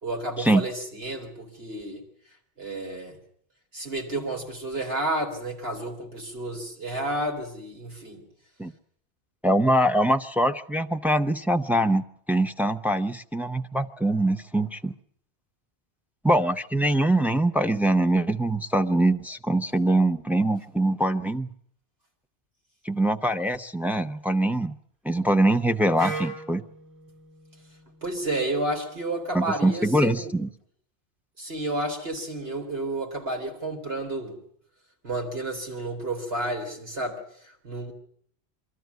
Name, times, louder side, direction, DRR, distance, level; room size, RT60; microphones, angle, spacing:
voice 1, 0.0-2.0 2.6-3.2 3.7-8.2 28.0-30.3 31.4-34.4 35.0-37.9, right 1 dB, 65° right, 1 dB, 4.0 m, -31 dB
voice 2, 9.4-14.9 16.2-21.5 22.8-24.7 25.0-26.6 29.3-30.5, right 1 dB, ahead, 5 dB, 0.6 m, -23 dB
Wind instrument woodwind instrument, 26.0-29.9, right 3 dB, 30° right, 5.2 m, -40 dB
23.0 x 14.0 x 9.4 m, 0.64 s
omnidirectional pair, 1.1 m